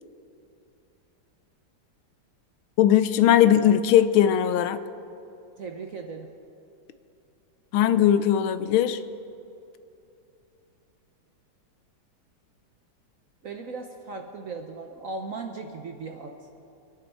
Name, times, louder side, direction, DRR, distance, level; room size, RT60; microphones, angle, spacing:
voice 1, 2.8-4.8 7.7-9.0, left 10 dB, 80° left, 13 dB, 1.4 m, -19 dB
voice 2, 5.6-6.3 13.4-16.4, right 4 dB, 55° right, 4 dB, 0.9 m, -37 dB
26.0 x 10.5 x 4.2 m, 2.7 s
omnidirectional pair, 2.3 m